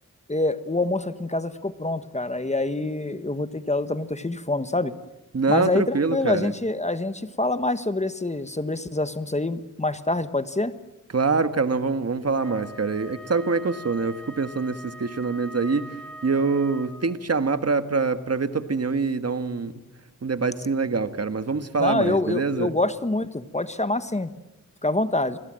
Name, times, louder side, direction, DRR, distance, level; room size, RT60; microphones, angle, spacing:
voice 1, 0.3-4.9 5.5-10.7 21.8-24.3 24.8-25.4, left 2 dB, 20° left, 12 dB, 1.3 m, -26 dB
voice 2, 5.3-6.5 11.1-15.9 16.2-19.7 20.2-22.7, right 4 dB, 50° right, 10 dB, 1.5 m, -25 dB
Wind instrument woodwind instrument, 12.4-17.3, right 1 dB, 5° left, 4.9 m, -43 dB
29.5 x 21.5 x 7.6 m, 1.0 s
wide cardioid pair, 90°, 32 cm